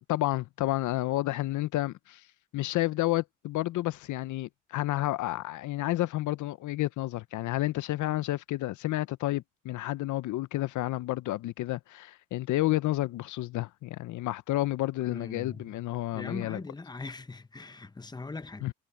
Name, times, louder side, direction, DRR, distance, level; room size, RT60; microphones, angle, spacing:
voice 1, 0.0-2.2 2.5-16.6 18.6-18.7, left 16 dB, 75° left, 0.6 m, -30 dB
voice 2, 15.1-15.7 16.1-18.7, left 3 dB, 15° left, 0.9 m, -41 dB
cardioid pair, 90°, 30 cm